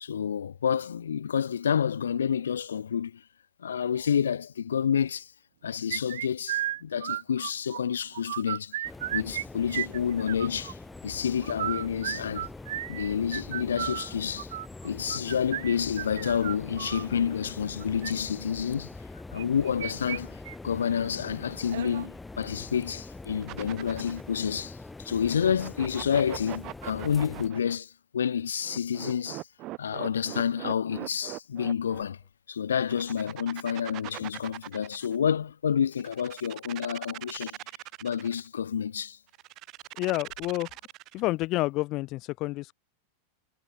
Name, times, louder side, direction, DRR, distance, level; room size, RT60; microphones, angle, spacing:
voice 1, 0.0-3.2 3.6-5.3 5.6-10.8 11.0-12.5 12.9-14.5 14.8-18.9 19.3-29.4 29.8-32.2 32.5-37.6 38.0-39.2, left 8 dB, 70° left, 0.5 m, -29 dB
sound 1, 5.9-7.8 8.1-9.4 9.7-10.7 11.4-17.1 17.8-18.1 19.4-20.2 20.5-20.6 21.0-21.1 21.7-22.1, right 13 dB, 60° right, 0.8 m, -34 dB
sound 2, 8.8-27.5, left 3 dB, 10° left, 2.1 m, -44 dB
sound 3, 23.4-24.3 25.3-27.8 28.6-32.0 32.8-35.2 35.9-38.4 39.3-41.3, right 18 dB, 40° right, 3.5 m, -41 dB
voice 2, 40.0-40.7 41.1-42.7, left 20 dB, 40° left, 1.5 m, -29 dB
figure-of-eight pair, 90°, 0 cm